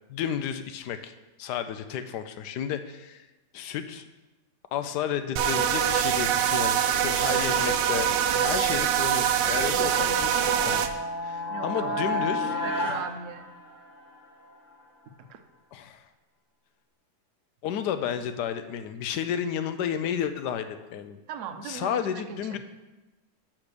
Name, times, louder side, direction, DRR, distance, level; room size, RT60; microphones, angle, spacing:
voice 1, 0.1-1.1 1.4-3.3 3.5-4.0 4.7-10.8 11.2-12.5 15.7-16.1 17.6-21.2 21.6-22.6, left 9 dB, 75° left, 10 dB, 1.1 m, -32 dB
sound 1, 5.4-10.9, right 9 dB, 90° right, 1.3 m, -24 dB
sound 2, 9.7-14.1, left 1 dB, 55° left, 1.8 m, -32 dB
voice 2, 11.5-13.5 15.2-15.4 21.3-22.6, right 7 dB, 60° right, 8 dB, 0.8 m, -39 dB
6.6 x 6.0 x 6.7 m, 1.1 s
omnidirectional pair, 1.9 m